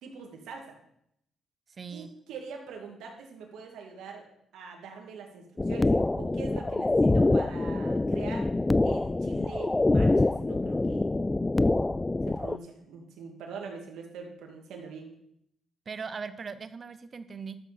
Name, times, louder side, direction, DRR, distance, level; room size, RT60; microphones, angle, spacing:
voice 1, 0.0-0.8 1.9-4.2 4.5-8.5 8.8-11.1 12.3-15.1, right 5 dB, 80° right, 1 dB, 2.3 m, -43 dB
voice 2, 1.8-2.1 15.9-17.6, right 5 dB, 40° right, 13 dB, 0.8 m, -39 dB
sound 1, 5.6-12.6, left 2 dB, 15° left, 0.3 m, -25 dB
12.5 x 7.1 x 4.2 m, 0.73 s
cardioid pair, 90°, 0 cm